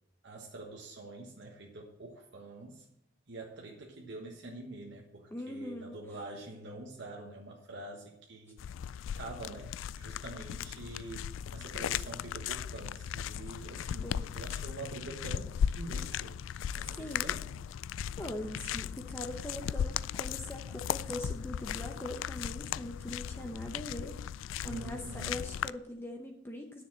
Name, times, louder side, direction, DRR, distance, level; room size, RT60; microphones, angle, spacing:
voice 1, 0.2-2.9 3.3-8.6 9.2-16.4 16.7-17.5 24.6-25.4, right 2 dB, 65° right, 0 dB, 1.3 m, -46 dB
voice 2, 5.3-6.0 14.0-14.3 16.9-17.3 18.2-24.1 24.6-26.8, left 1 dB, 10° left, 3 dB, 0.8 m, -41 dB
sound 1, 8.6-25.7, left 9 dB, 85° left, 0.3 m, -37 dB
10.0 x 6.7 x 7.5 m, 0.78 s
head